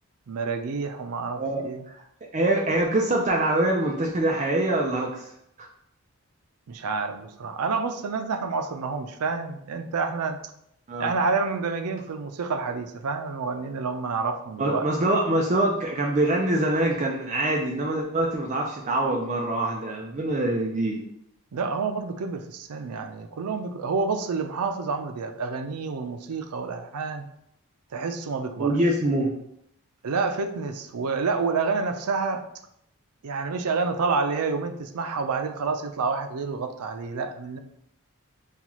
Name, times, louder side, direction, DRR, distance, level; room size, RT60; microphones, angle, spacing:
voice 1, 0.3-1.8 6.7-10.4 11.0-14.9 21.5-27.3 27.9-28.7 30.0-32.4 33.2-37.6, right 4 dB, 90° right, 7 dB, 0.5 m, -28 dB
voice 2, 2.3-5.3 10.9-11.1 14.6-21.0 28.6-29.3, right 1 dB, 30° right, 0 dB, 0.4 m, -24 dB
5.5 x 2.3 x 3.0 m, 0.75 s
head